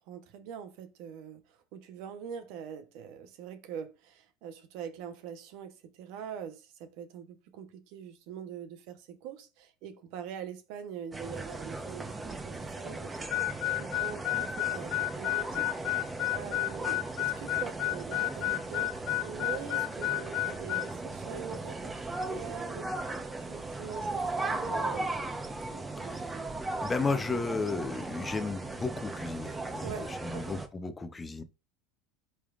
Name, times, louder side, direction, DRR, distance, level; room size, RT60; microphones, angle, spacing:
voice 1, 0.1-15.8 16.3-21.9 22.2-23.2 23.5-25.1 25.7-26.2 29.8-30.5, right 7 dB, 65° right, 1.0 m, -43 dB
sound 1, 11.1-30.7, right 2 dB, 15° right, 1.0 m, -37 dB
Harmonica, 13.3-20.9, left 19 dB, 50° left, 0.4 m, -31 dB
voice 2, 26.8-31.4, left 4 dB, 20° left, 0.8 m, -34 dB
10.5 x 3.5 x 2.5 m
supercardioid pair, 105°, 0 cm